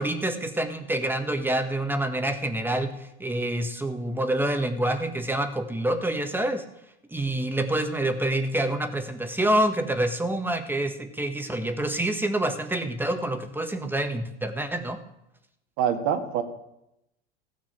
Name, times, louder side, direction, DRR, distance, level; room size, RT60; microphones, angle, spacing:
voice 1, 0.0-6.6 7.1-15.0, right 1 dB, 5° right, 6 dB, 1.5 m, -27 dB
voice 2, 15.8-16.4, right 8 dB, 50° right, 6 dB, 2.0 m, -25 dB
16.0 x 6.0 x 7.4 m, 0.84 s
figure-of-eight pair, 85°, 33 cm